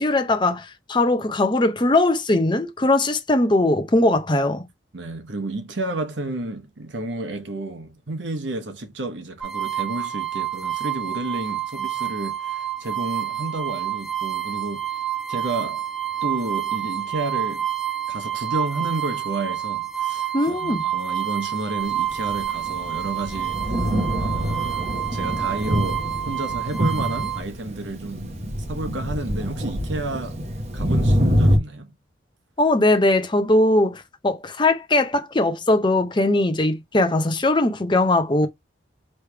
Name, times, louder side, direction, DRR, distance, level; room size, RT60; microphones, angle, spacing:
voice 1, 0.0-4.6 20.3-20.8 32.6-38.5, left 2 dB, 25° left, 0.7 m, -20 dB
voice 2, 4.9-14.8 15.3-15.9 16.2-17.7 18.1-23.8 24.2-28.2 28.7-30.4 30.7-31.9, right 2 dB, 80° right, 1.1 m, -31 dB
sound 1, 9.4-27.4, right 11 dB, ahead, 1.6 m, -28 dB
Thunder, 22.1-31.6, equal, 35° right, 0.9 m, -25 dB
3.3 x 3.3 x 4.5 m
head